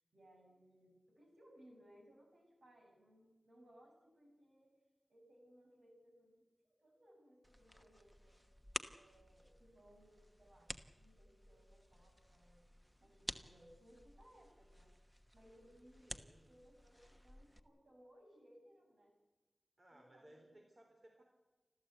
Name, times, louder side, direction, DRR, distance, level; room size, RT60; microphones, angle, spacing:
voice 1, 0.1-4.7 5.1-8.5 8.9-10.7 11.0-12.7 13.0-14.9 15.3-16.2 16.5-19.1 19.9-20.7, equal, 80° right, 1 dB, 7.2 m, -65 dB
sound 1, 7.4-17.6, equal, 5° right, 1.1 m, -52 dB
voice 2, 16.0-16.5 19.8-21.2, right 1 dB, 50° right, 1 dB, 3.8 m, -63 dB
29.5 x 13.5 x 8.3 m, 1.2 s
wide cardioid pair, 75°, 0 cm